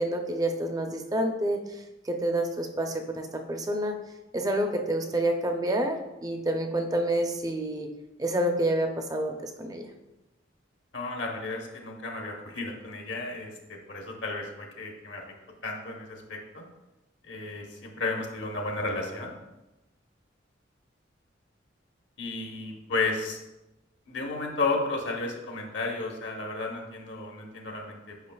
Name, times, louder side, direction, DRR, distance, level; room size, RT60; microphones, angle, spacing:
voice 1, 0.0-4.0 4.3-7.9 8.2-9.9, right 1 dB, 20° right, 4 dB, 0.5 m, -28 dB
voice 2, 10.9-15.2 15.6-16.6 17.2-19.3 22.2-23.4 24.1-28.1, left 3 dB, 65° left, 1 dB, 1.0 m, -33 dB
8.3 x 5.1 x 2.3 m, 1.0 s
head